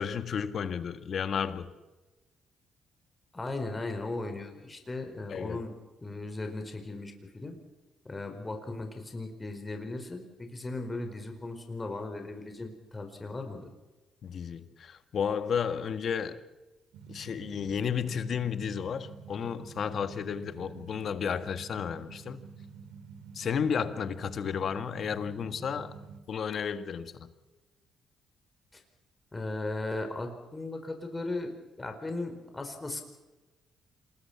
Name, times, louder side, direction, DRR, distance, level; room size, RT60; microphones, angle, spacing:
voice 1, 0.0-1.7 5.3-5.6 14.2-16.4 17.1-22.4 23.3-26.0 26.3-27.3, left 7 dB, 55° left, 1.7 m, -32 dB
voice 2, 3.3-5.7 6.0-7.6 8.0-13.7 28.7-28.8 29.3-31.5 31.8-33.0, left 2 dB, 20° left, 4.6 m, -37 dB
sound 1, 16.9-26.2, right 6 dB, 80° right, 2.5 m, -48 dB
27.5 x 20.5 x 6.0 m
cardioid pair, 90°, 0 cm